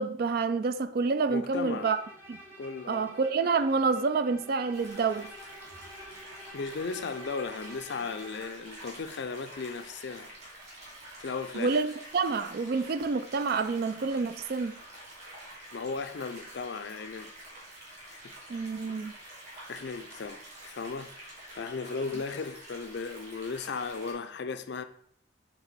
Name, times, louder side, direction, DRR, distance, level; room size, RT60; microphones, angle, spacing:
voice 1, 0.0-2.0 2.3-2.4 2.9-5.3 11.5-14.8 18.5-19.1, right 4 dB, 50° right, 0.4 m, -28 dB
voice 2, 1.3-1.9 2.6-3.1 6.5-10.3 11.2-11.8 15.7-17.3 18.0-18.2 19.7-24.8, left 4 dB, 60° left, 0.4 m, -36 dB
Bowed string instrument, 1.7-8.7, equal, 10° right, 1.0 m, -49 dB
sound 1, 4.7-24.1, right 1 dB, 35° right, 2.7 m, -48 dB
7.2 x 3.5 x 4.0 m
head